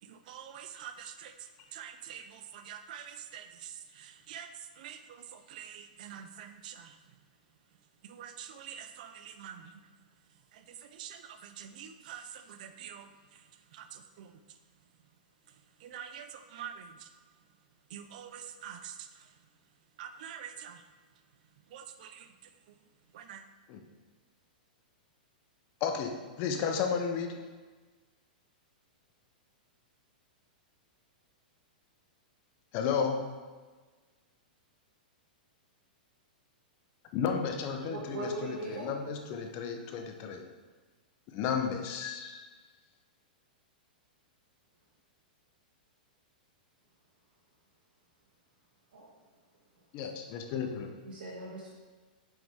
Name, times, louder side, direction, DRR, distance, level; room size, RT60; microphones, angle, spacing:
voice 1, 0.0-7.0 8.0-9.9 10.5-13.4 13.7-14.4 15.8-17.1 17.9-19.3 20.0-20.8 21.7-22.7 23.1-23.4, right 8 dB, 60° right, 9 dB, 0.6 m, -46 dB
voice 2, 25.8-26.1 26.4-27.3 32.7-33.2 37.1-40.4 41.3-42.5 49.9-50.9, left 6 dB, 40° left, 4 dB, 0.7 m, -33 dB
voice 3, 37.8-38.9 48.9-49.1 51.0-51.7, right 2 dB, 75° right, -5 dB, 1.4 m, -39 dB
6.3 x 4.5 x 3.6 m, 1.4 s
hypercardioid pair, 130°, 5 cm